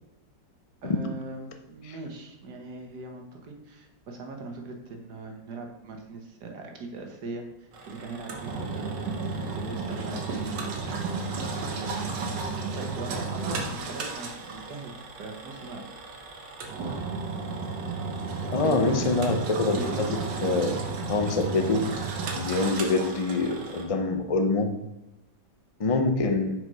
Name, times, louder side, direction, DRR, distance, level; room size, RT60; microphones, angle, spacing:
voice 1, 0.8-11.4 11.6-12.5 12.8-15.8 18.6-19.0 19.7-20.1 20.4-20.7, right 3 dB, 70° right, 3 dB, 1.8 m, -40 dB
Engine, 7.7-23.8, right 4 dB, 85° right, 1.8 m, -33 dB
voice 2, 18.5-20.8 21.1-21.9 22.3-24.8 25.8-26.5, left 3 dB, 55° left, 5 dB, 0.3 m, -25 dB
6.4 x 5.1 x 5.3 m, 0.96 s
omnidirectional pair, 1.9 m